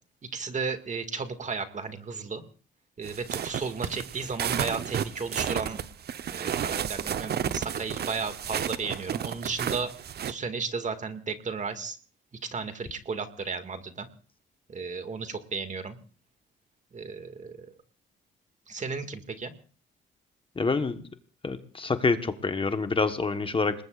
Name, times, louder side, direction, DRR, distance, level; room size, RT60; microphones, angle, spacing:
voice 1, 0.3-2.4 3.0-5.8 6.3-9.9 10.3-12.0 12.4-14.1 14.7-16.0 16.9-17.7 18.7-19.5, right 4 dB, 40° right, 8 dB, 2.0 m, -34 dB
sound 1, 3.0-10.3, right 9 dB, 55° right, 0.8 m, -32 dB
voice 2, 20.6-21.0 21.4-23.7, left 4 dB, 25° left, 9 dB, 1.2 m, -27 dB
26.5 x 20.0 x 2.5 m, 0.38 s
cardioid pair, 90°, 20 cm